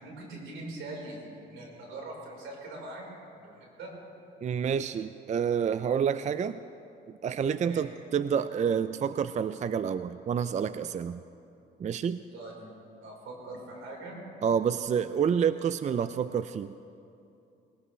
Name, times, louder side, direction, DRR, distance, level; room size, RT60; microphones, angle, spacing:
voice 1, 0.0-3.9 7.6-7.9 12.3-12.7 13.0-14.2, right 2 dB, 85° right, -2 dB, 4.4 m, -42 dB
voice 2, 4.4-6.6 7.2-11.2 11.8-12.2 14.4-16.7, right 7 dB, 35° right, 13 dB, 0.4 m, -28 dB
20.0 x 18.5 x 3.2 m, 2.7 s
cardioid pair, 90°, 20 cm